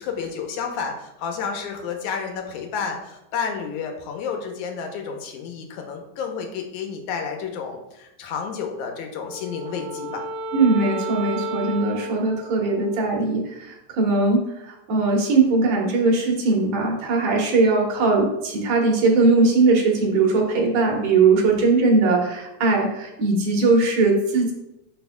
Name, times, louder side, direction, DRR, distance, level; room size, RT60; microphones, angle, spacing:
voice 1, 0.0-10.2, left 6 dB, 75° left, 3 dB, 2.2 m, -31 dB
Wind instrument woodwind instrument, 9.2-13.7, right 2 dB, 85° right, 2.2 m, -33 dB
voice 2, 10.5-14.4 14.7-24.5, right 3 dB, 65° right, -1 dB, 2.6 m, -20 dB
11.5 x 4.5 x 2.3 m, 0.92 s
omnidirectional pair, 3.6 m